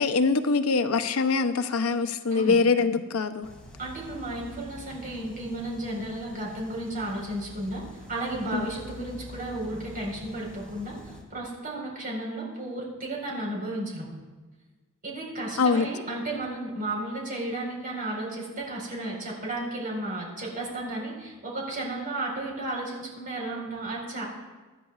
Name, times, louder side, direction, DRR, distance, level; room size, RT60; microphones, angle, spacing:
voice 1, 0.0-3.5 8.5-8.6 15.6-15.9, left 4 dB, 75° left, 9 dB, 0.7 m, -23 dB
sound 1, 3.4-11.2, left 1 dB, 5° left, 2.3 m, -46 dB
voice 2, 3.8-7.8 8.1-14.1 15.0-24.3, right 1 dB, 40° right, -2 dB, 4.5 m, -33 dB
24.0 x 10.5 x 2.4 m, 1.3 s
head